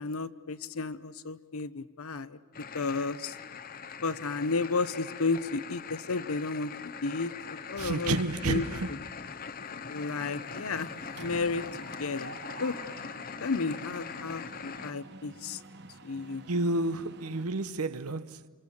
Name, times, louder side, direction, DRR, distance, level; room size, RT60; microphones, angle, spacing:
voice 1, 0.0-2.4 2.7-3.4 4.0-8.2 8.5-8.6 9.9-10.9 11.2-12.3 12.6-12.7 13.4-15.6 16.0-16.4, left 4 dB, 75° left, 0.8 m, -32 dB
sound 1, 2.5-14.9, left 6 dB, 40° left, 0.7 m, -42 dB
voice 2, 7.8-8.9 16.5-18.5, right 2 dB, 90° right, 0.9 m, -30 dB
Mechanisms, 7.9-8.5 8.8-9.0 9.3-17.4, right 3 dB, 50° right, 1.0 m, -49 dB
27.5 x 27.0 x 7.2 m
head